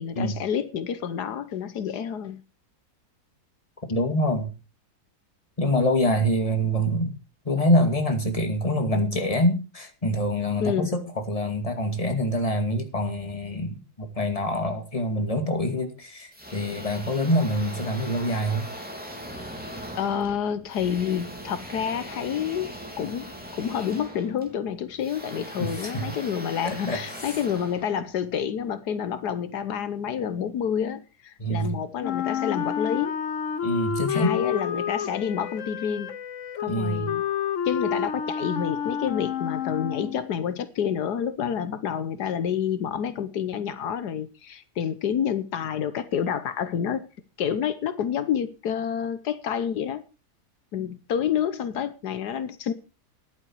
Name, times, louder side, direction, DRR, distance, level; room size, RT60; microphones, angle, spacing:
voice 1, 0.0-2.4 10.6-11.0 20.0-22.7 23.0-33.2 34.1-36.1 36.6-37.2 37.6-47.1 47.4-50.0 50.7-52.7, left 8 dB, 80° left, 1.5 m, -28 dB
voice 2, 3.9-4.5 5.6-7.1 7.5-18.7 25.6-26.1 26.6-27.0 31.4-31.8 33.6-34.3 36.7-37.1, equal, 20° left, 2.4 m, -25 dB
sound 1, 16.3-28.5, equal, 5° right, 3.2 m, -40 dB
Wind instrument woodwind instrument, 32.0-40.3, left 8 dB, 55° left, 1.1 m, -29 dB
14.0 x 11.0 x 4.6 m
omnidirectional pair, 1.7 m